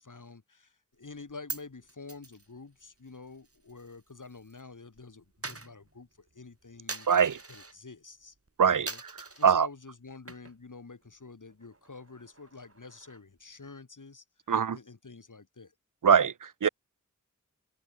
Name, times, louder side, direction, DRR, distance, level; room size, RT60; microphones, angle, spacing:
voice 1, 0.0-7.1 7.5-8.4 8.7-9.0 9.4-14.2 14.7-15.7, left 4 dB, 75° left, 5.6 m, -48 dB
Coin (dropping), 1.1-4.6 4.9-7.8 8.2-8.5 8.9-9.6 10.1-10.7 11.0-11.1 11.5-13.4, right 3 dB, 45° right, 4.4 m, -44 dB
voice 2, 7.1-7.4 8.6-8.9 9.4-9.7 14.5-14.8 16.0-16.7, right 7 dB, 85° right, 0.8 m, -22 dB
wide cardioid pair, 45°, 31 cm